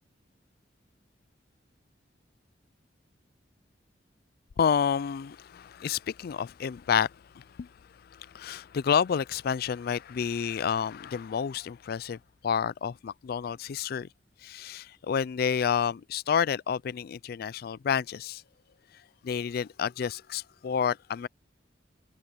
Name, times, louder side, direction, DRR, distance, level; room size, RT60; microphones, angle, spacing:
voice 1, 4.6-7.7 8.1-12.2 12.4-14.1 14.4-18.4 19.2-21.3, left 7 dB, 55° left, 0.3 m, -29 dB
head